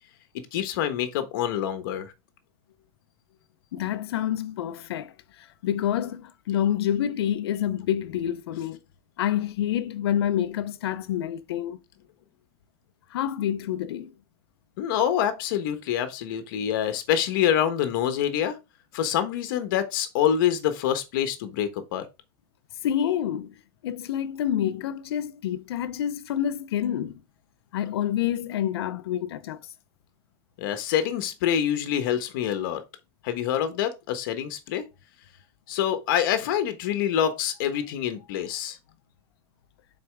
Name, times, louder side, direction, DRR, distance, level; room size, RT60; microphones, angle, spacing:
voice 1, 0.5-2.1 14.8-18.6 18.9-22.0 30.6-32.8 33.2-34.8 35.7-38.8, left 10 dB, 55° left, 1.3 m, -26 dB
voice 2, 3.7-5.1 5.6-8.8 9.2-11.8 13.1-14.1 22.8-23.5 23.8-27.2 27.7-29.6, left 10 dB, 75° left, 0.7 m, -27 dB
6.9 x 4.4 x 3.5 m
supercardioid pair, 165°, 13 cm